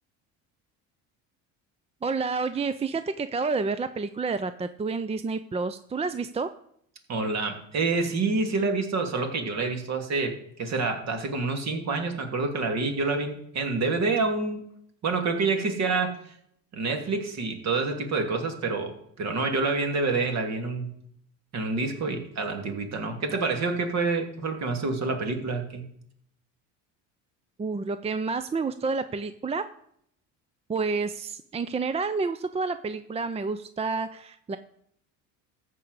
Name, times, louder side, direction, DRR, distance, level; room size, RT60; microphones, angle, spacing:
voice 1, 2.0-6.5 27.6-29.7 30.7-34.6, right 4 dB, 20° right, 11 dB, 0.6 m, -29 dB
voice 2, 7.1-10.3 10.6-14.6 15.0-16.2 16.7-18.9 19.2-20.9 21.5-25.8, right 3 dB, 50° right, 4 dB, 2.8 m, -27 dB
14.0 x 4.9 x 8.1 m, 0.68 s
supercardioid pair, 95°, 34 cm